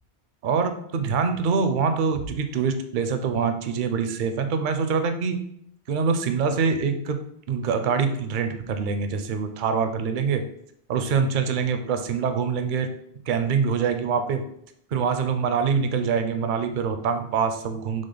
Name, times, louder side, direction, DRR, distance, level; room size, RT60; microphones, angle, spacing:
voice 1, 0.4-5.4 5.9-10.4 10.9-12.9 13.3-14.4 14.9-18.1, right 5 dB, 60° right, 7 dB, 0.6 m, -24 dB
6.2 x 2.1 x 3.9 m, 0.72 s
omnidirectional pair, 1.1 m